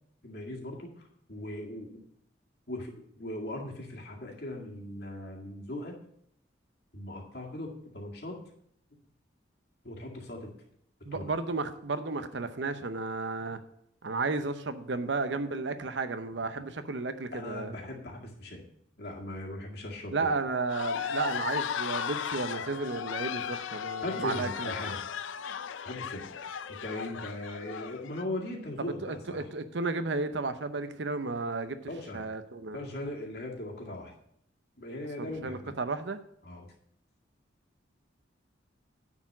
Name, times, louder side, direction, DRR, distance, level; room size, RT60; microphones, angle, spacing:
voice 1, 0.2-2.0 2.7-5.9 6.9-8.4 9.8-10.5 11.1-11.3 17.3-18.6 19.0-20.3 24.0-25.0 25.8-26.3 26.7-29.5 31.9-32.3 32.7-34.1 34.8-35.7 36.4-36.7, left 1 dB, 55° left, 1.9 m, -39 dB
voice 2, 11.0-13.6 14.0-17.7 20.1-24.7 28.8-31.8 32.1-32.8 35.2-36.2, right 3 dB, 70° right, 0.7 m, -33 dB
sound 1, 20.7-28.2, left 7 dB, 85° left, 0.5 m, -36 dB
9.8 x 4.5 x 7.2 m
head